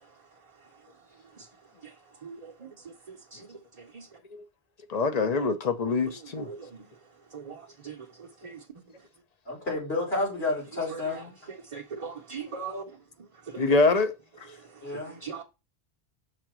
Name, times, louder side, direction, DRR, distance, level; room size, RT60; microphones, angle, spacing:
voice 1, 2.2-2.7 3.1-3.4 3.9-4.1 6.5-6.9 7.3-8.0 8.4-8.6 11.7-12.8 13.5-13.7 15.2-15.4, right 5 dB, 40° right, 0.8 m, -39 dB
voice 2, 4.9-6.5 13.5-14.1, left 3 dB, 40° left, 0.8 m, -24 dB
voice 3, 9.5-11.3 14.8-15.2, left 2 dB, 70° left, 4.2 m, -31 dB
6.0 x 3.8 x 6.0 m
omnidirectional pair, 1.1 m